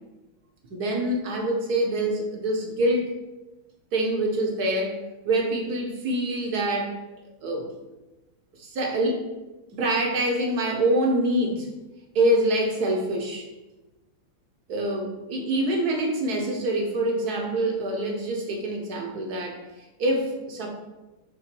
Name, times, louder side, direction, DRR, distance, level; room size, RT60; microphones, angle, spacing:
voice 1, 0.7-3.1 3.9-5.0 5.2-7.0 7.4-7.7 8.6-9.2 9.7-11.7 12.1-13.5 14.7-19.6 20.0-20.7, right 1 dB, 55° right, 2 dB, 1.2 m, -25 dB
5.8 x 3.8 x 5.9 m, 1.1 s
omnidirectional pair, 2.4 m